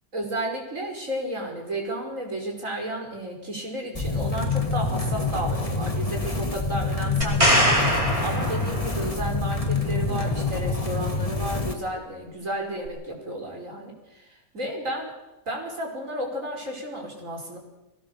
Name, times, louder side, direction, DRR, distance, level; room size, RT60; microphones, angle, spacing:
voice 1, 0.1-7.8 8.2-15.1 15.5-17.6, right 1 dB, 65° right, 1 dB, 5.7 m, -32 dB
sound 1, 3.9-11.7, left 3 dB, 25° left, 2.0 m, -27 dB
sound 2, 7.2-9.2 12.9-13.0, equal, 20° right, 4.8 m, -22 dB
22.5 x 18.5 x 7.1 m, 1.0 s
omnidirectional pair, 1.5 m